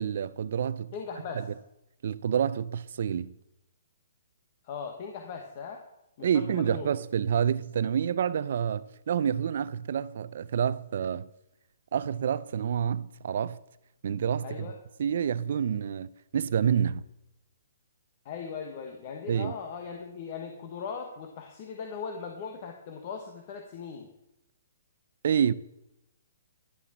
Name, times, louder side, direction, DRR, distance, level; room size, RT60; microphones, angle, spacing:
voice 1, 0.0-0.9 1.3-1.4 2.0-3.3 6.2-11.3 11.9-13.6 14.0-14.7 15.0-17.0 19.3-19.5 25.2-25.5, right 8 dB, 55° right, 0.5 m, -28 dB
voice 2, 0.9-1.4 4.6-5.8 6.2-6.9 14.4-14.8 18.2-24.1, left 6 dB, 35° left, 1.2 m, -39 dB
11.0 x 7.0 x 7.2 m
hypercardioid pair, 165°, 0 cm